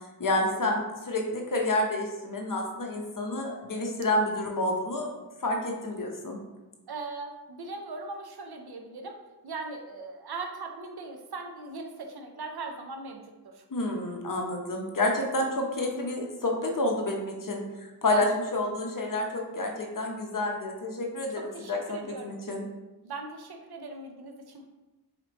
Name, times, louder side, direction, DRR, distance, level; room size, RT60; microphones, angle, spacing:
voice 1, 0.2-5.1 5.4-6.4 13.7-22.6, left 1 dB, 55° left, 1 dB, 0.7 m, -29 dB
voice 2, 6.9-9.2 9.4-13.6 21.4-22.4 23.0-24.6, right 3 dB, 70° right, 3 dB, 0.6 m, -39 dB
4.2 x 3.1 x 3.0 m, 1.1 s
wide cardioid pair, 70°, 40 cm